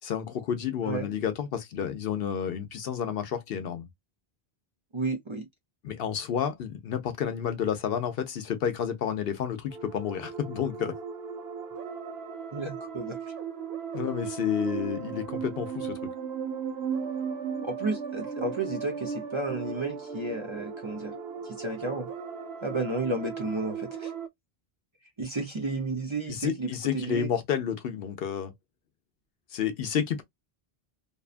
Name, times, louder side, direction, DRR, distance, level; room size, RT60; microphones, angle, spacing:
voice 1, 0.0-3.9 5.8-10.9 13.9-16.0 26.3-28.5 29.5-30.2, left 8 dB, 70° left, 0.8 m, -30 dB
voice 2, 4.9-5.5 12.5-13.2 17.6-21.2 21.4-22.1 22.6-24.1 25.2-26.7 26.9-27.3, right 3 dB, 35° right, 0.6 m, -32 dB
sound 1, 9.7-24.3, right 6 dB, 75° right, 0.9 m, -37 dB
2.7 x 2.2 x 2.4 m
omnidirectional pair, 1.1 m